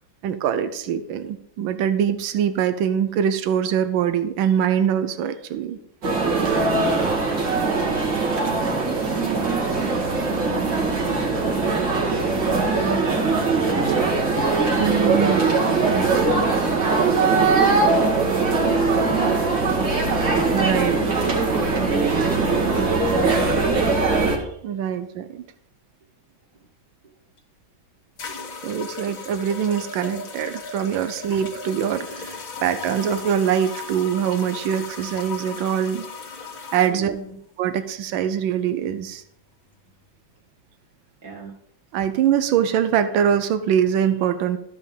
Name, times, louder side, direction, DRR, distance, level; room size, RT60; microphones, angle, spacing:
voice 1, 0.2-5.8 14.8-15.5 17.0-17.1 20.5-21.0 24.3-25.4 28.6-36.1 36.7-37.2 37.6-39.2 41.9-44.6, right 9 dB, 90° right, 11 dB, 1.5 m, -23 dB
sound 1, 6.0-24.4, right 3 dB, 70° right, 2.7 m, -21 dB
voice 2, 6.4-6.9 9.1-11.6 12.0-12.3 12.8-14.1 15.8-17.0 17.7-19.9 20.9-23.1 26.6-26.7 36.9-37.4 41.2-41.5, right 3 dB, 50° right, -1 dB, 2.8 m, -35 dB
sound 2, 27.4-27.5 28.2-36.9, left 4 dB, 50° left, 1.6 m, -36 dB
13.5 x 5.3 x 5.3 m, 0.71 s
omnidirectional pair, 2.1 m